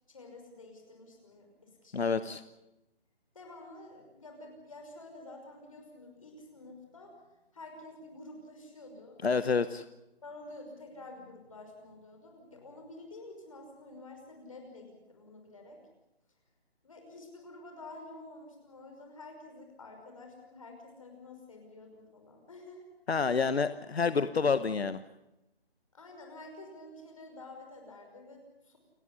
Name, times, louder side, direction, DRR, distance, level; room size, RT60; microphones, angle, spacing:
voice 1, 0.1-2.2 3.3-7.3 7.5-9.2 10.2-15.8 16.8-22.9 25.9-28.8, left 2 dB, 35° left, 2 dB, 5.6 m, -49 dB
voice 2, 1.9-2.4 9.2-9.8 23.1-25.0, left 5 dB, 80° left, 12 dB, 1.1 m, -28 dB
29.0 x 11.5 x 9.8 m, 0.94 s
hypercardioid pair, 180°, 31 cm